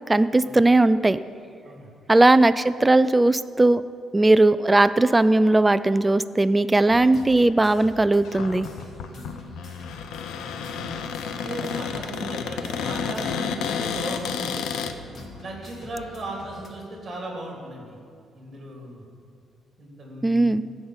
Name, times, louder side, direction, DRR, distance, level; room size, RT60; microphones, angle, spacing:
voice 1, 0.1-1.2 2.1-3.8 4.1-8.7 20.2-20.6, right 2 dB, 10° right, 14 dB, 0.3 m, -18 dB
sound 1, 6.9-16.7, left 2 dB, 30° left, 1.6 m, -43 dB
Cupboard open or close, 8.2-14.9, left 7 dB, 80° left, 0.8 m, -31 dB
voice 2, 10.6-11.1 11.4-14.6 15.4-18.0 18.3-19.0 19.8-20.5, right 1 dB, 25° right, -1 dB, 3.3 m, -36 dB
15.0 x 6.4 x 8.8 m, 2.4 s
cardioid pair, 170°, 0 cm